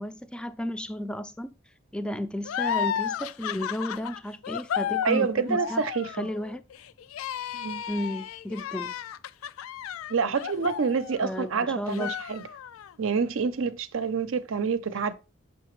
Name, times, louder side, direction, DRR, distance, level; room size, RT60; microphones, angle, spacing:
voice 1, 0.0-1.6 1.9-5.8 6.2-6.6 7.9-8.9 11.2-12.1, left 1 dB, 5° left, 0.3 m, -33 dB
sound 1, 2.4-11.5 11.9-12.9, left 9 dB, 85° left, 0.3 m, -33 dB
voice 2, 5.0-6.3 7.5-7.8 10.1-12.5 13.0-15.1, right 5 dB, 70° right, 0.5 m, -27 dB
6.4 x 5.7 x 3.1 m
head